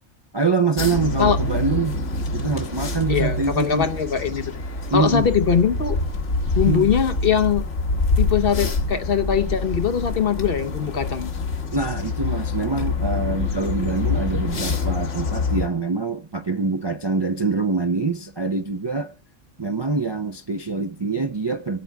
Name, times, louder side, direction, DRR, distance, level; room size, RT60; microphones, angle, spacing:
voice 1, 0.3-1.9 2.3-3.9 4.9-5.3 6.6-6.9 11.7-19.1 19.6-21.8, right 3 dB, 35° right, 0.4 m, -24 dB
sound 1, 0.8-15.7, left 3 dB, 70° left, 1.7 m, -26 dB
voice 2, 3.1-4.4 4.9-6.0 6.6-7.7 8.2-11.3, left 7 dB, 55° left, 0.9 m, -21 dB
23.5 x 8.6 x 3.4 m
omnidirectional pair, 1.3 m